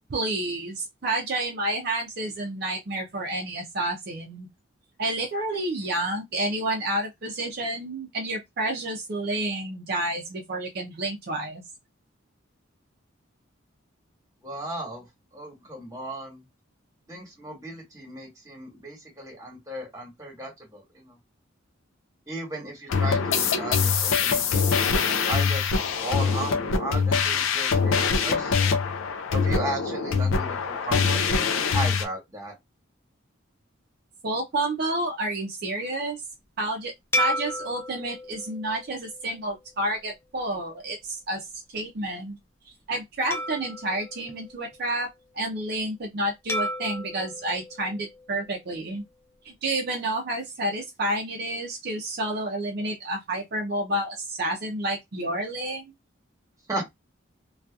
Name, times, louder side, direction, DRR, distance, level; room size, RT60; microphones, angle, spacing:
voice 1, 0.1-4.5 5.0-11.6 34.2-36.2 36.6-41.5 41.7-42.4 42.6-45.1 45.3-49.0 49.4-55.8, right 1 dB, 50° right, 0.5 m, -30 dB
voice 2, 14.4-15.0 15.3-16.4 17.1-21.2 22.3-24.7 25.3-26.5 26.8-28.5 29.3-31.5 31.7-32.5 56.7-56.8, right 1 dB, 15° right, 1.2 m, -35 dB
sound 1, 22.9-32.0, left 5 dB, 80° left, 0.4 m, -24 dB
sound 2, 37.1-39.8 40.4-40.6 43.3-45.1 46.5-48.8, equal, 10° left, 0.4 m, -33 dB
2.6 x 2.3 x 2.3 m
head